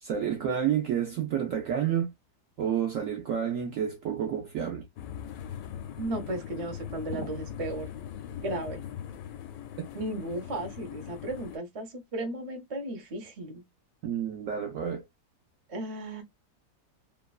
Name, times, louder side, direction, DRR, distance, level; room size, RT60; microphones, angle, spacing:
voice 1, 0.0-2.1 2.6-4.9 14.0-15.0, right 9 dB, 65° right, 0.8 m, -29 dB
sound 1, 5.0-11.6, left 9 dB, 80° left, 1.2 m, -40 dB
voice 2, 6.0-7.9 8.4-8.8 9.9-13.6 15.7-16.2, right 1 dB, 40° right, 0.5 m, -35 dB
3.0 x 2.2 x 2.3 m
omnidirectional pair, 1.9 m